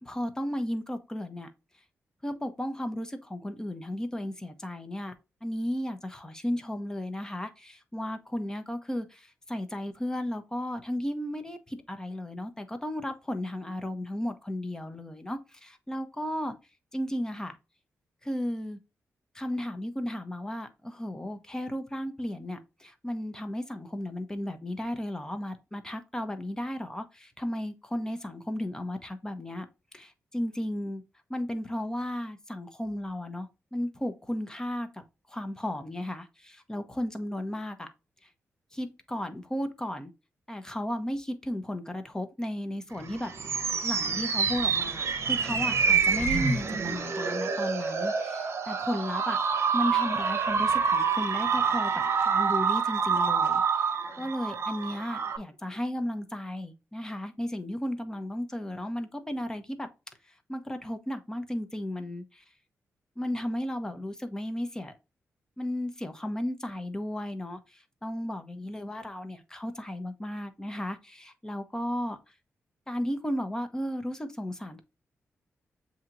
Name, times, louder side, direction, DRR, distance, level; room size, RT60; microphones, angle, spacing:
voice 1, 0.0-1.5 2.2-5.1 5.4-16.6 16.9-17.6 18.2-18.8 19.3-29.7 29.9-31.0 31.3-35.0 35.3-37.9 38.7-40.1 40.5-43.3 43.8-59.9 60.5-62.4 63.2-64.9 65.6-72.2 72.9-74.8, left 1 dB, 10° left, 0.8 m, -34 dB
sound 1, 43.0-55.4, right 5 dB, 60° right, 0.8 m, -27 dB
7.2 x 2.8 x 2.5 m
cardioid pair, 95°, 5 cm